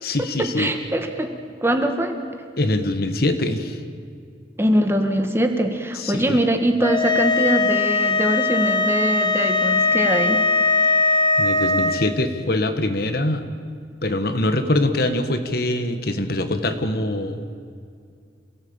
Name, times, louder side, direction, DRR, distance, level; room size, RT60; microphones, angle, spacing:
voice 1, 0.0-0.7 2.6-3.8 6.0-6.4 11.4-13.4 14.0-17.5, left 1 dB, 55° left, 8 dB, 1.6 m, -23 dB
voice 2, 0.6-1.3 1.6-2.1 4.6-10.4, right 1 dB, 15° right, 5 dB, 1.7 m, -22 dB
sound 1, 6.8-12.0, left 3 dB, 25° left, 1.0 m, -20 dB
28.0 x 17.5 x 8.9 m, 2.3 s
head